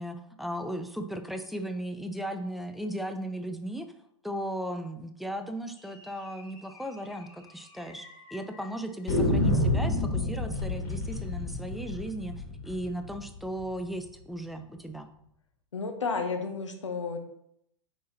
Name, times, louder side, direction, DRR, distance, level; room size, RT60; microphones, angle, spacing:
voice 1, 0.0-3.9 4.2-15.1, right 1 dB, ahead, 7 dB, 0.4 m, -36 dB
sound 1, 6.3-6.4 6.7-6.8 7.1-7.2 7.8-8.4 9.1-13.9, left 1 dB, 40° left, 2.6 m, -29 dB
voice 2, 15.7-17.2, left 4 dB, 70° left, 5 dB, 0.9 m, -32 dB
9.1 x 4.2 x 2.9 m, 0.75 s
figure-of-eight pair, 105°, 16 cm